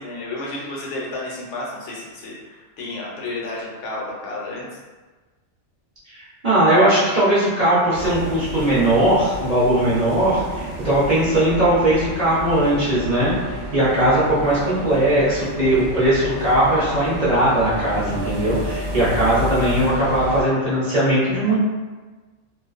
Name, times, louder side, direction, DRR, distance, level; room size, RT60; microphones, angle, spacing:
voice 1, 0.0-4.7, left 2 dB, 70° left, -4 dB, 0.9 m, -31 dB
voice 2, 6.1-21.6, right 1 dB, 45° right, -10 dB, 0.7 m, -19 dB
sound 1, 7.9-20.4, right 1 dB, 80° right, 0.9 m, -31 dB
2.4 x 2.2 x 2.4 m, 1.3 s
omnidirectional pair, 1.3 m